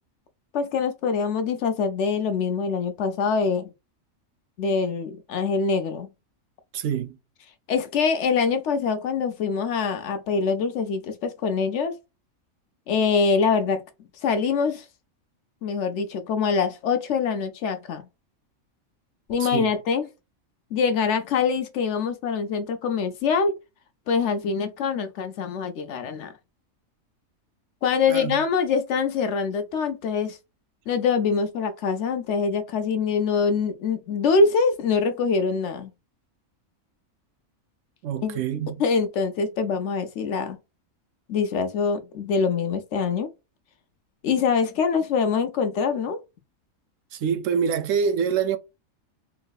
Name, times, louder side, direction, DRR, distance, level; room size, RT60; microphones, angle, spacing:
voice 1, 0.5-3.7 4.6-6.1 7.7-11.9 12.9-13.8 14.2-14.8 15.6-18.0 19.3-20.1 20.7-23.5 24.1-26.3 27.8-30.4 30.9-35.9 38.2-38.4 38.8-40.6 41.3-43.3 44.2-46.2, left 5 dB, 65° left, 0.8 m, -24 dB
voice 2, 6.7-7.2 19.4-19.7 28.1-28.4 38.0-38.8 47.1-48.6, right 7 dB, 70° right, 0.9 m, -25 dB
3.9 x 2.7 x 2.3 m
omnidirectional pair, 1.4 m